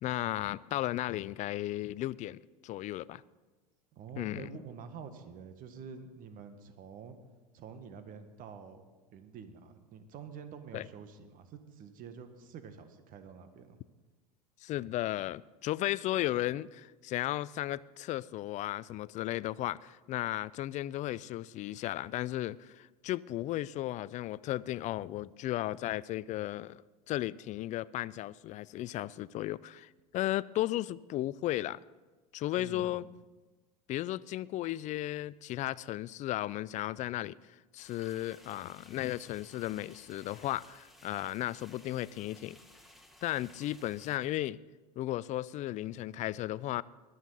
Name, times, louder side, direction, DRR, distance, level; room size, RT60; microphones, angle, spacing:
voice 1, 0.0-3.2 4.2-4.5 10.7-10.9 14.6-26.8 27.1-31.8 32.3-33.0 33.9-42.6 43.2-44.6 45.0-46.8, left 15 dB, 35° left, 0.5 m, -35 dB
voice 2, 3.9-7.2 7.5-8.8 9.1-13.8 32.5-33.0, right 6 dB, 45° right, 1.6 m, -48 dB
sound 1, 37.8-44.2, left 1 dB, ahead, 1.8 m, -58 dB
20.5 x 12.5 x 4.1 m
hypercardioid pair, 85°, 20 cm